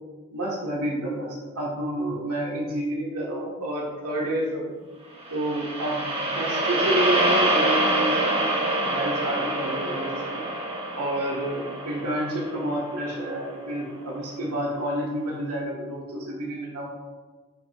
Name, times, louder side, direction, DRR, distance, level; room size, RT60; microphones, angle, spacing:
voice 1, 0.3-4.7 5.3-6.0 6.3-8.5 8.8-10.5 11.0-16.9, right 1 dB, 90° right, -3 dB, 1.8 m, -29 dB
sound 1, 5.2-13.5, right 1 dB, 25° right, 1.1 m, -26 dB
11.5 x 5.2 x 2.6 m, 1.3 s
head